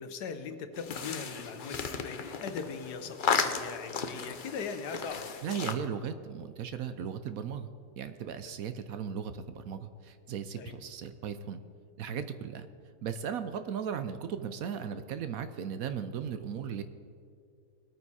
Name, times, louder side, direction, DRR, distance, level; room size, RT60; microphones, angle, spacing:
voice 1, 0.0-5.3 8.5-8.6 10.6-10.8, left 5 dB, 80° left, 9 dB, 1.5 m, -40 dB
sound 1, 0.7-5.7, left 6 dB, 50° left, 0.6 m, -34 dB
voice 2, 5.4-7.7 8.0-11.6 12.0-12.7 13.0-16.8, right 7 dB, 65° right, 10 dB, 1.0 m, -37 dB
20.5 x 9.2 x 4.2 m, 2.3 s
omnidirectional pair, 1.7 m